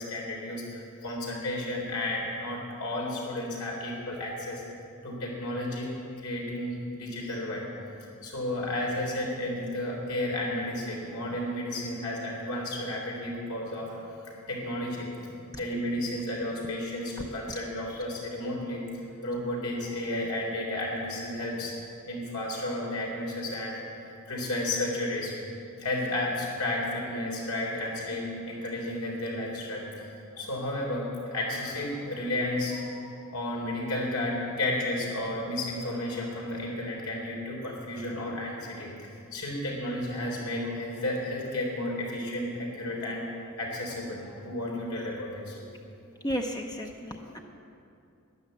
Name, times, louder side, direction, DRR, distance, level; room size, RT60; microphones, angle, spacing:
voice 1, 0.0-4.6 5.0-5.9 6.2-7.6 8.2-18.8 19.2-21.7 22.1-23.8 24.3-25.3 25.8-29.8 30.4-43.3 43.6-45.7 47.2-47.4, left 1 dB, 90° left, -2 dB, 3.7 m, -32 dB
voice 2, 46.2-47.4, equal, 20° left, 2 dB, 0.7 m, -33 dB
12.0 x 10.5 x 8.1 m, 2.6 s
head